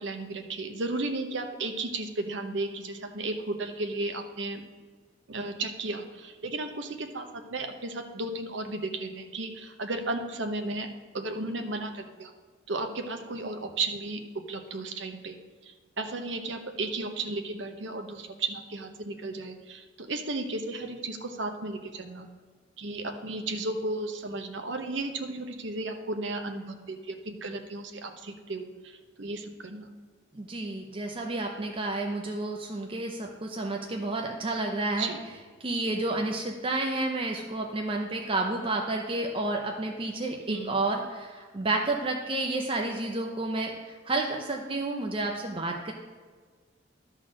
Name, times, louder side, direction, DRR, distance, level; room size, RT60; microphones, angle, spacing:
voice 1, 0.0-4.6 5.3-10.9 11.1-12.3 12.7-15.4 15.6-22.3 22.8-29.9 35.0-35.2 40.5-40.7, right 2 dB, 75° right, 5 dB, 0.9 m, -34 dB
voice 2, 30.3-35.1 35.6-45.9, right 2 dB, 30° right, 1 dB, 0.6 m, -30 dB
11.5 x 4.0 x 6.3 m, 1.5 s
head